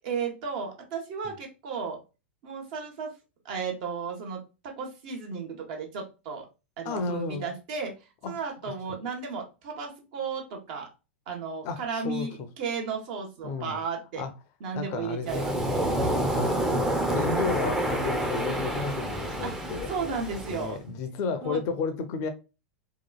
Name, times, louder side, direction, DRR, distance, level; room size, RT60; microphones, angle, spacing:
voice 1, 0.0-2.0 2.4-3.1 3.4-6.5 6.8-7.9 8.2-10.9 11.3-14.2 14.6-15.8 19.4-20.8 21.4-21.6, right 5 dB, 55° right, 0.9 m, -34 dB
voice 2, 6.8-7.5 8.2-8.3 11.6-12.5 13.4-13.8 14.2-14.3 14.8-15.9 16.3-19.9 20.5-22.3, left 4 dB, 45° left, 0.5 m, -33 dB
Waves surf, 15.3-20.7, right 1 dB, 10° right, 0.6 m, -28 dB
2.8 x 2.3 x 2.2 m
figure-of-eight pair, 95°, 6 cm